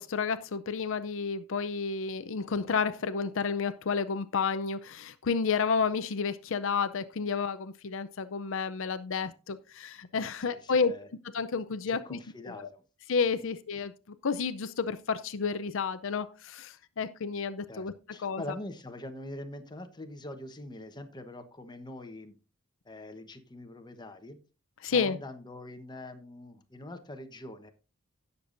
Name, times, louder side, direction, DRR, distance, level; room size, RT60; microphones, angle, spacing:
voice 1, 0.0-10.9 11.3-12.2 13.1-13.9 14.2-17.9 18.2-18.4 24.8-25.2, left 5 dB, 70° left, 0.6 m, -31 dB
voice 2, 10.2-11.1 11.9-12.8 13.4-13.5 17.7-22.3 22.8-24.4 24.8-27.7, left 1 dB, 20° left, 1.1 m, -44 dB
17.0 x 6.8 x 2.6 m
head